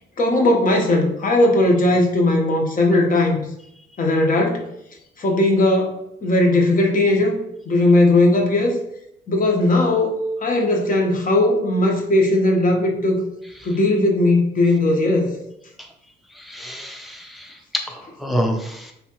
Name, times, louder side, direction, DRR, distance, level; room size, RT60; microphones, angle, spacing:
voice 1, 0.2-3.4 4.0-4.6 5.2-7.4 7.7-8.8 9.3-13.2 13.6-15.3, left 2 dB, 45° left, 2 dB, 0.9 m, -18 dB
voice 2, 16.4-17.5 17.9-18.9, equal, ahead, 2 dB, 0.5 m, -28 dB
3.5 x 2.9 x 2.9 m, 0.80 s
cardioid pair, 90°, 20 cm